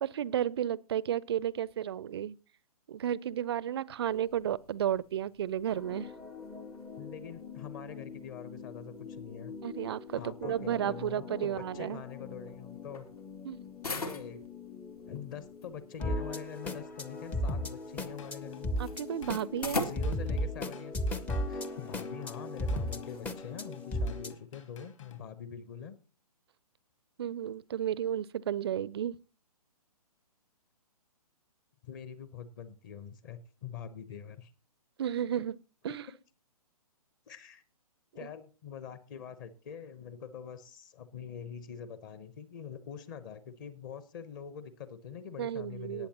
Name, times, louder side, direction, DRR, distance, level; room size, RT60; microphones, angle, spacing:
voice 1, 0.0-2.4 2.9-6.1 9.6-12.0 13.4-13.6 18.8-19.9 27.2-29.2 35.0-35.6 35.8-36.0 45.4-46.1, right 10 dB, 40° right, 0.5 m, -33 dB
sound 1, 4.0-23.7, left 3 dB, 75° left, 2.3 m, -46 dB
sound 2, 5.7-24.3, left 1 dB, 10° left, 0.5 m, -38 dB
voice 2, 7.0-9.5 10.1-13.1 13.9-14.4 15.1-18.7 19.8-21.0 21.5-26.0 31.8-34.5 37.3-37.6 38.1-46.1, left 8 dB, 30° left, 0.9 m, -44 dB
Drum kit / Drum, 17.8-25.2, left 7 dB, 55° left, 2.6 m, -55 dB
18.5 x 8.6 x 2.9 m
figure-of-eight pair, 130°, 20 cm